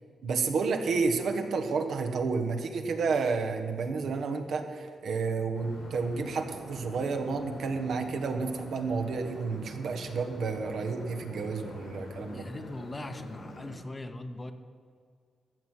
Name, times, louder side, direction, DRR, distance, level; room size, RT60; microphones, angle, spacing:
voice 1, 0.2-12.5, right 4 dB, 70° right, 5 dB, 1.3 m, -30 dB
sound 1, 5.5-13.7, left 1 dB, 85° left, 3.9 m, -46 dB
voice 2, 12.3-14.5, left 2 dB, 20° left, 8 dB, 0.9 m, -40 dB
14.0 x 6.1 x 9.8 m, 2.1 s
cardioid pair, 100°, 0 cm